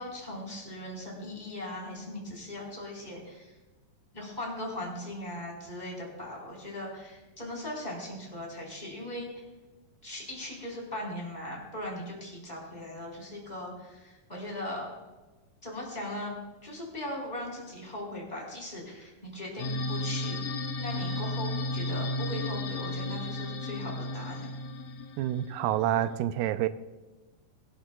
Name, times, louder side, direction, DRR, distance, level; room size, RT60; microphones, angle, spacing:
voice 1, 0.0-3.6 4.1-9.4 10.0-14.9 15.6-16.3 16.6-24.5, left 1 dB, 10° left, 3.9 m, -39 dB
sound 1, 19.6-26.1, left 1 dB, 65° left, 2.2 m, -34 dB
voice 2, 25.2-26.7, right 12 dB, 85° right, 2.2 m, -28 dB
23.0 x 12.0 x 2.3 m
omnidirectional pair, 3.9 m